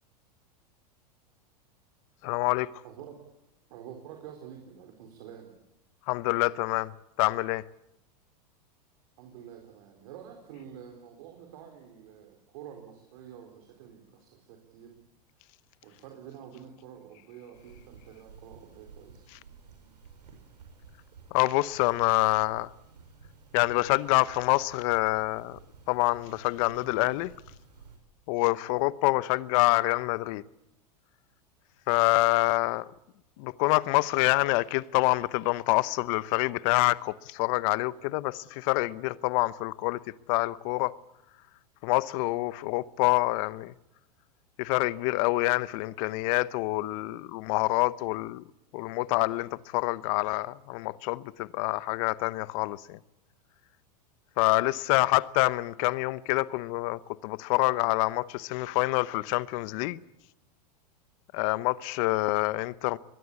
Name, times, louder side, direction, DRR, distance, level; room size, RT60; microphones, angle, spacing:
voice 1, 2.2-2.7 6.1-6.9 7.2-7.6 21.3-22.7 23.5-25.6 25.9-27.3 28.3-30.4 31.9-32.9 33.4-40.0 40.3-41.0 41.8-43.7 44.6-48.4 48.7-53.0 54.4-60.0 61.3-63.0, left 21 dB, 55° left, 0.9 m, -26 dB
voice 2, 2.8-3.2 3.7-5.5 9.2-14.9 15.8-19.3, right 9 dB, 60° right, 4.2 m, -48 dB
sound 1, 17.5-28.0, right 5 dB, 90° right, 6.3 m, -53 dB
22.5 x 21.5 x 8.5 m
hypercardioid pair, 105°, 21 cm